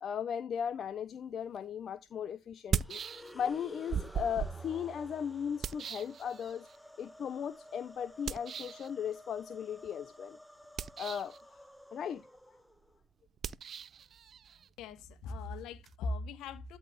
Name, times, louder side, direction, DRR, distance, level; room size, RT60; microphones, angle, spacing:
voice 1, 0.0-3.0 3.3-6.7 7.0-10.4 11.0-11.3 11.9-12.2, left 8 dB, 45° left, 0.5 m, -37 dB
sound 1, 1.5-1.6 2.5-3.6 3.9-6.8 8.3-8.9 10.6-11.4 13.4-15.9, right 7 dB, 45° right, 0.4 m, -39 dB
sound 2, 2.8-13.0, left 1 dB, ahead, 0.7 m, -53 dB
voice 2, 14.8-16.8, left 2 dB, 65° left, 1.4 m, -39 dB
13.0 x 4.4 x 3.4 m
hypercardioid pair, 70°, 0 cm